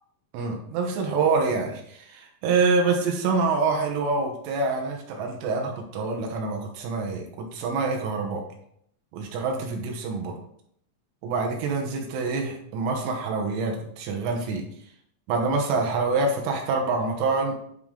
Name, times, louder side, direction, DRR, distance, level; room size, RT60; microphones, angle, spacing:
voice 1, 0.3-8.4 9.1-10.4 11.2-14.7 15.3-17.5, right 4 dB, 80° right, 2 dB, 3.5 m, -26 dB
10.0 x 4.6 x 3.7 m, 0.68 s
omnidirectional pair, 5.7 m